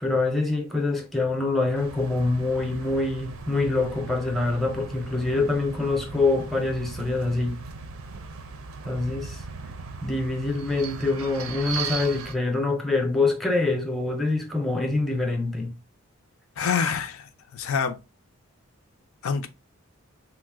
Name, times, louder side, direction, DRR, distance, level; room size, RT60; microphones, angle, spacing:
voice 1, 0.0-7.6 8.9-9.4 10.0-15.7, left 3 dB, ahead, 0.5 m, -25 dB
sound 1, 1.7-12.3, right 5 dB, 85° right, 0.5 m, -38 dB
voice 2, 16.6-18.0 19.2-19.5, left 6 dB, 80° left, 0.4 m, -26 dB
3.1 x 2.0 x 3.4 m
head